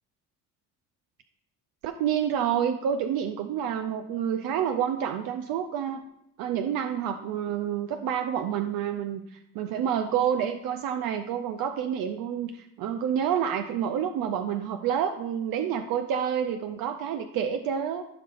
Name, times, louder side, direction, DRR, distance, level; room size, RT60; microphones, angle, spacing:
voice 1, 1.8-6.0 6.4-18.0, right 8 dB, 85° right, 7 dB, 0.6 m, -28 dB
14.5 x 5.7 x 2.5 m, 0.80 s
cardioid pair, 110°, 34 cm